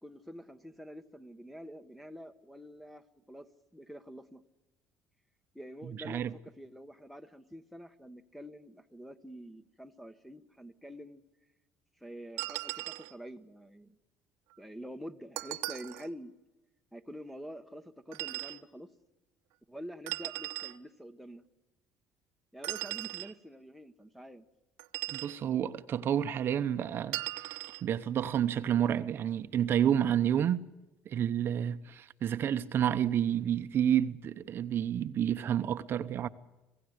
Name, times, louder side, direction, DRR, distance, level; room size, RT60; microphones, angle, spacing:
voice 1, 0.0-4.4 5.5-11.2 12.0-14.0 14.6-16.3 16.9-18.9 19.7-21.4 22.5-24.5, equal, ahead, 1.1 m, -47 dB
sound 1, 12.4-13.1 15.4-16.1 18.1-18.6 20.1-20.8 22.6-23.3 24.8-25.4 27.1-27.8, right 19 dB, 90° right, 1.0 m, -38 dB
voice 2, 25.1-30.7 31.1-36.3, right 9 dB, 45° right, 0.9 m, -30 dB
26.5 x 16.5 x 8.0 m
cardioid pair, 120°, 5 cm